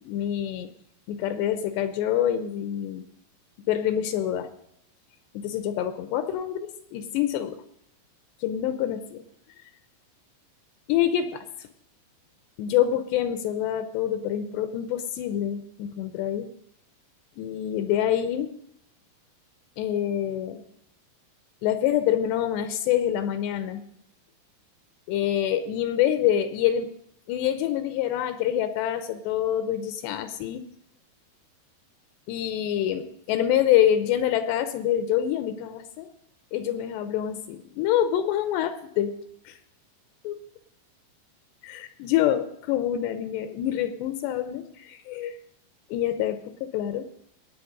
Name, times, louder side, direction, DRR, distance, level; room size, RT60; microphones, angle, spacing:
voice 1, 0.1-0.7 1.1-3.0 3.7-4.5 5.3-7.6 8.4-9.2 10.9-11.4 12.6-16.5 17.4-18.5 19.8-20.6 21.6-23.8 25.1-26.9 27.3-30.6 32.3-36.1 36.5-39.2 39.5-39.6 40.2-40.4 41.6-45.4 45.9-47.1, left 11 dB, 80° left, 10 dB, 2.7 m, -26 dB
21.0 x 8.8 x 5.1 m, 0.71 s
omnidirectional pair, 5.3 m